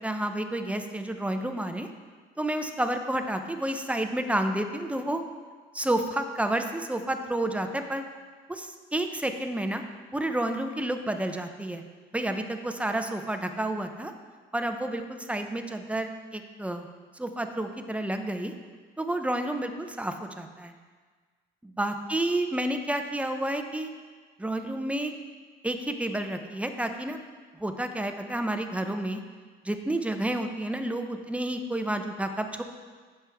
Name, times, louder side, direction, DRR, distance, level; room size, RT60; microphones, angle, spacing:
voice 1, 0.0-1.9 2.4-5.2 5.7-8.0 8.5-9.8 10.1-11.8 12.1-14.1 14.5-16.9 17.1-18.5 19.0-20.7 21.6-23.9 24.4-25.1 25.6-27.2 27.6-29.2 29.6-32.6, right 1 dB, 5° right, 6 dB, 0.6 m, -30 dB
10.5 x 7.5 x 3.5 m, 1.5 s
cardioid pair, 110°, 19 cm